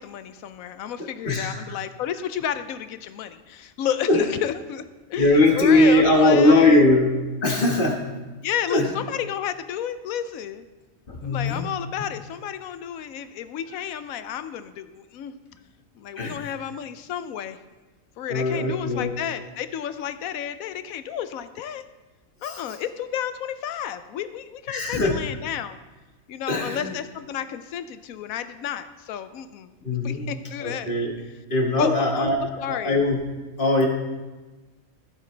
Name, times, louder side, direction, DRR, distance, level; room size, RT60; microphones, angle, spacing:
voice 1, 0.0-4.8 5.1-6.9 8.4-10.7 11.2-15.4 15.9-17.6 18.2-21.8 22.4-25.8 26.3-29.7 30.0-30.9 31.8-33.0, left 9 dB, 90° left, 12 dB, 1.1 m, -31 dB
voice 2, 1.2-1.6 4.1-4.2 5.2-7.1 7.4-8.0 8.7-8.9 11.1-11.7 16.2-16.5 18.3-19.1 22.4-22.6 24.7-25.1 26.5-26.9 29.8-30.3 30.6-31.1 31.5-32.4 32.7-33.2 33.6-33.9, left 2 dB, 40° left, 0 dB, 1.7 m, -20 dB
15.0 x 8.2 x 3.3 m, 1.2 s
omnidirectional pair, 1.4 m